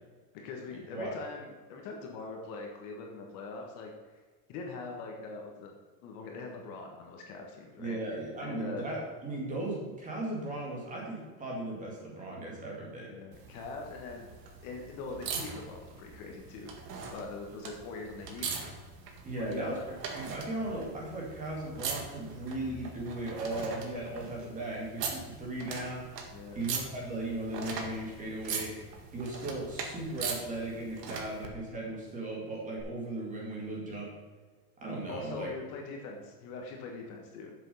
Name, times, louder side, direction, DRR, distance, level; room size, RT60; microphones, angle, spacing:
voice 1, 0.3-3.9 4.5-5.7 6.0-8.0 8.4-9.0 13.1-14.3 14.6-16.7 17.1-18.5 19.4-19.9 26.3-26.6 35.1-37.5, left 3 dB, 40° left, 1 dB, 1.4 m, -42 dB
voice 2, 7.8-13.1 19.2-19.8 20.1-26.1 26.5-28.8 29.1-34.1 34.8-35.5, right 2 dB, 15° right, -2 dB, 2.1 m, -37 dB
sound 1, 13.3-31.5 32.8-32.9, right 5 dB, 85° right, 2.0 m, -41 dB
7.4 x 7.3 x 5.5 m, 1.4 s
supercardioid pair, 160°, 48 cm